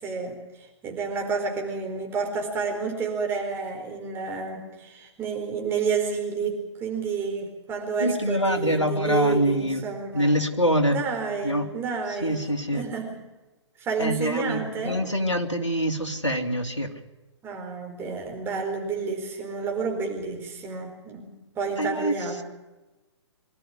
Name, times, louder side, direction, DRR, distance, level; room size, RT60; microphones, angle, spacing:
voice 1, 0.0-10.3 10.9-12.4 12.7-13.3 13.8-15.0 17.4-22.4, right 5 dB, 15° right, 2 dB, 4.3 m, -30 dB
voice 2, 8.0-9.8 10.1-11.0 11.4-11.7 12.2-12.8 14.0-16.9 21.8-22.3, equal, 85° left, 5 dB, 3.0 m, -25 dB
24.0 x 13.0 x 9.8 m, 1.1 s
figure-of-eight pair, 125°, 15 cm